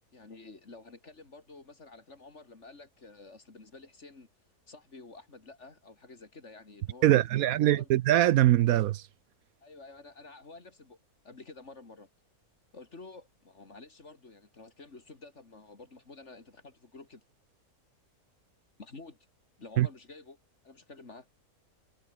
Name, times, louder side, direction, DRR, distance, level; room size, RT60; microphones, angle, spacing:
voice 1, 0.1-4.3 4.7-7.9 9.6-11.0 11.2-12.1 12.7-17.2 18.8-19.2 19.6-20.4 20.6-21.3, left 3 dB, 50° left, 3.2 m, -50 dB
voice 2, 7.0-9.0 19.8-19.9, right 14 dB, 75° right, 1.0 m, -22 dB
omnidirectional pair, 1.6 m